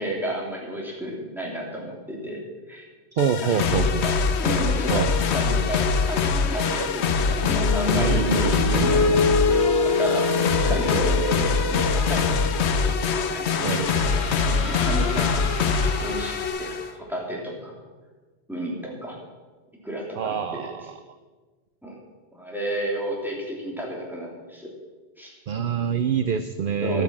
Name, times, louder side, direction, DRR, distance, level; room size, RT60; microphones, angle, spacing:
voice 1, 0.0-2.4 2.7-2.9 3.4-4.1 4.4-12.9 13.3-15.3 16.0-17.8 18.5-19.2 19.8-20.7 21.8-22.0 22.3-24.7 25.2-25.4 26.8-27.0, equal, ahead, -3 dB, 2.9 m, -32 dB
voice 2, 3.1-4.0 4.9-5.1 7.8-9.4 13.6-13.8 20.2-21.0 25.5-27.0, right 8 dB, 60° right, 10 dB, 0.7 m, -26 dB
sound 1, 3.2-16.9, left 5 dB, 80° left, 1.0 m, -23 dB
sound 2, 7.4-14.0, left 3 dB, 30° left, 3.1 m, -26 dB
sound 3, 12.9-17.2, left 1 dB, 45° left, 2.1 m, -38 dB
11.5 x 9.2 x 7.3 m, 1.3 s
omnidirectional pair, 1.1 m